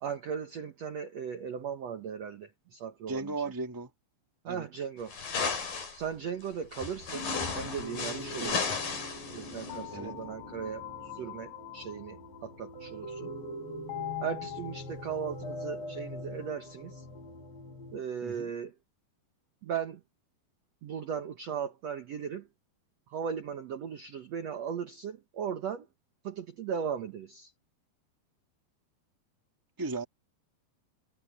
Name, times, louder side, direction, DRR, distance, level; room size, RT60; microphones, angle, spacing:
voice 1, 0.0-3.3 4.4-5.1 5.9-7.3 7.5-8.8 9.3-13.3 14.2-17.0 17.9-18.7 19.6-20.0 20.8-22.5 23.1-25.9 26.2-27.5, right 7 dB, 80° right, 1.5 m, -37 dB
voice 2, 3.1-3.9 4.5-4.7 8.4-8.6 9.9-10.1 18.2-18.5 29.8-30.0, right 3 dB, 10° right, 1.1 m, -36 dB
sound 1, 5.1-6.0 6.7-9.8, left 5 dB, 55° left, 6.8 m, -34 dB
sound 2, 7.1-18.0, left 3 dB, 85° left, 8.8 m, -41 dB
omnidirectional pair, 4.9 m